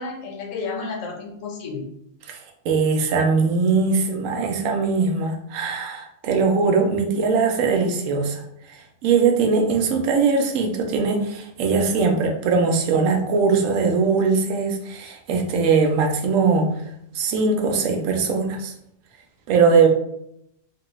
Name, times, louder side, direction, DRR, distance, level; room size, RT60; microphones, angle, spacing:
voice 1, 0.0-1.9, left 4 dB, 90° left, 1 dB, 1.1 m, -31 dB
voice 2, 2.7-8.4 9.0-16.8 17.1-18.7 19.5-19.9, right 4 dB, 85° right, 3 dB, 1.0 m, -20 dB
3.0 x 2.2 x 3.0 m, 0.76 s
omnidirectional pair, 1.3 m